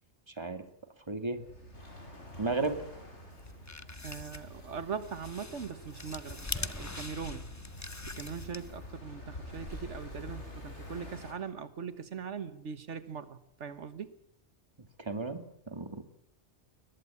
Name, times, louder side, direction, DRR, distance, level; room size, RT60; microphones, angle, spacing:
voice 1, 0.3-0.7 1.1-1.4 2.4-2.8 15.0-15.4 15.7-16.0, right 3 dB, 25° right, 9 dB, 2.2 m, -33 dB
sound 1, 1.4-11.3, left 1 dB, 75° left, 5.5 m, -48 dB
sound 2, 1.7-11.1, left 2 dB, 45° left, 6.8 m, -52 dB
sound 3, 3.4-8.9, left 2 dB, 15° left, 0.9 m, -43 dB
voice 2, 4.0-7.5 8.1-14.2, right 6 dB, 80° right, 12 dB, 1.6 m, -41 dB
22.5 x 20.5 x 8.5 m, 0.71 s
omnidirectional pair, 1.2 m